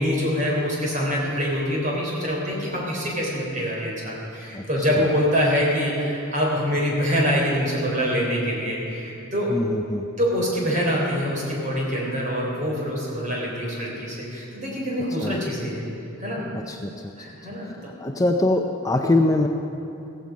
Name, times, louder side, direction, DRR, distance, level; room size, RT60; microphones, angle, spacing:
voice 1, 0.0-9.6 10.2-15.8 16.2-16.5 17.2-18.1, equal, 35° right, -3 dB, 3.8 m, -25 dB
voice 2, 9.5-10.1 15.2-15.4 16.5-17.1 17.6-19.5, left 2 dB, 15° left, 3 dB, 0.5 m, -23 dB
15.5 x 15.5 x 5.2 m, 2.8 s
head